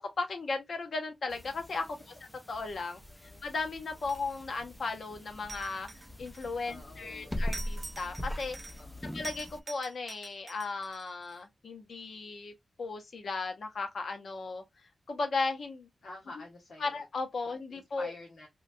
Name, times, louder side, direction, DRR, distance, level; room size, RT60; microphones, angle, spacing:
voice 1, 0.2-2.0 2.5-5.9 6.2-8.6 9.0-12.5 12.8-14.6 15.1-15.9 16.8-18.1, left 3 dB, 65° left, 0.6 m, -36 dB
sound 1, 1.3-9.6, equal, 5° left, 0.4 m, -41 dB
voice 2, 3.1-3.4 6.6-7.4 8.8-9.2 16.0-17.0 17.4-18.5, left 2 dB, 85° left, 1.0 m, -49 dB
sound 2, 4.0-4.6 5.5-6.8 7.5-8.9 9.2-11.4, right 2 dB, 35° right, 0.8 m, -46 dB
3.0 x 2.2 x 2.5 m
wide cardioid pair, 150°, 0 cm